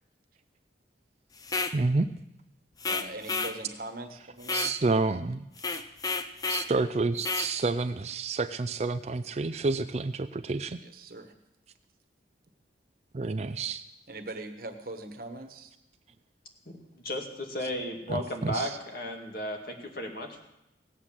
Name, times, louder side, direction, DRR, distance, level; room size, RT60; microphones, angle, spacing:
sound 1, 1.4-1.8 2.8-3.6 4.4-4.8 5.6-6.7 7.2-7.5, left 4 dB, 20° left, 0.5 m, -31 dB
voice 1, 1.7-2.1 4.5-5.4 6.5-10.8 13.1-13.8 18.1-18.8, right 3 dB, 35° right, 11 dB, 0.4 m, -29 dB
voice 2, 2.8-4.7 5.7-5.8 10.8-11.3 14.1-15.7, right 2 dB, 50° right, 6 dB, 1.3 m, -41 dB
voice 3, 16.7-20.4, left 1 dB, 50° left, 2 dB, 2.3 m, -35 dB
17.5 x 8.2 x 7.4 m, 0.88 s
head